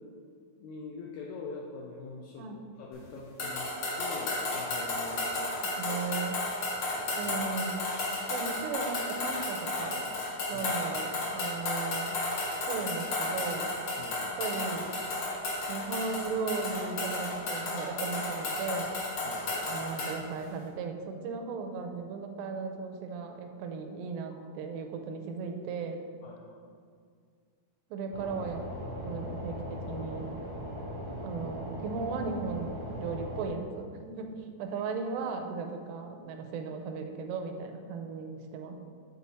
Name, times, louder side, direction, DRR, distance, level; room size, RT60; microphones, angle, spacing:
voice 1, 0.6-3.7 4.0-5.3 5.8-6.0 6.8-7.3 10.5-10.7 14.0-14.2 19.2-19.6 24.3-24.4 26.2-26.6, left 4 dB, 80° left, -2 dB, 1.7 m, -44 dB
sound 1, 3.4-20.2, left 2 dB, 60° left, 1.4 m, -33 dB
voice 2, 5.4-6.4 7.2-7.8 8.3-10.1 10.5-12.2 12.7-13.7 14.4-15.0 15.7-18.9 19.6-26.0 27.9-28.6 29.0-30.3 31.2-38.8, right 5 dB, 85° right, 4 dB, 2.2 m, -36 dB
sound 2, 28.1-33.5, equal, 20° left, 0.7 m, -39 dB
8.5 x 4.2 x 4.1 m, 2.1 s
omnidirectional pair, 4.0 m